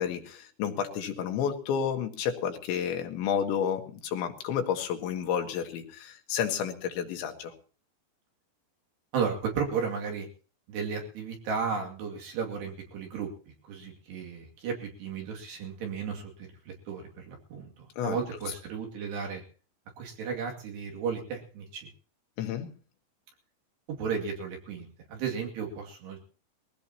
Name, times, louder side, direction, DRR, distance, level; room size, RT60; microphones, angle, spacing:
voice 1, 0.0-7.5 18.0-18.2 22.4-22.7, left 8 dB, 80° left, 5 dB, 3.8 m, -31 dB
voice 2, 9.1-10.3 10.7-13.3 13.7-19.4 20.0-21.9 23.9-26.2, right 6 dB, 65° right, 1 dB, 4.4 m, -34 dB
22.0 x 15.5 x 2.9 m, 0.38 s
omnidirectional pair, 5.2 m